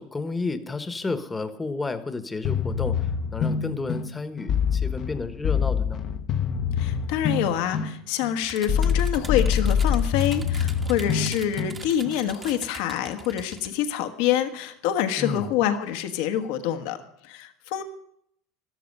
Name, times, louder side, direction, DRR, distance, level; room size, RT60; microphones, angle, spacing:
voice 1, 0.0-3.0 3.3-6.0 15.2-15.5, left 3 dB, 15° left, 10 dB, 1.3 m, -31 dB
sound 1, 2.4-12.2, left 7 dB, 45° left, 1.0 m, -26 dB
voice 2, 6.8-17.0 17.2-17.8, left 10 dB, 75° left, 8 dB, 1.4 m, -26 dB
sound 2, 8.4-13.7, right 3 dB, 20° right, 1.3 m, -43 dB
13.0 x 13.0 x 5.5 m, 0.73 s
supercardioid pair, 110°, 0 cm